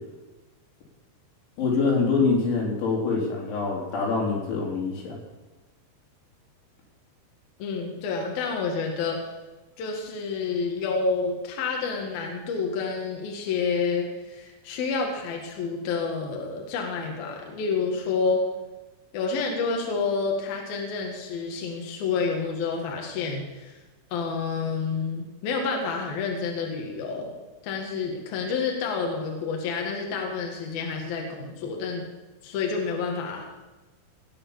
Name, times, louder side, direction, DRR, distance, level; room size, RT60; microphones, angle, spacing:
voice 1, 1.6-5.2, left 4 dB, 85° left, -3 dB, 5.9 m, -25 dB
voice 2, 7.6-9.3 9.8-18.4 19.1-23.8 24.1-27.3 27.6-32.1 32.4-33.4, left 4 dB, 60° left, 1 dB, 3.3 m, -29 dB
19.0 x 7.0 x 7.2 m, 1.1 s
omnidirectional pair, 5.2 m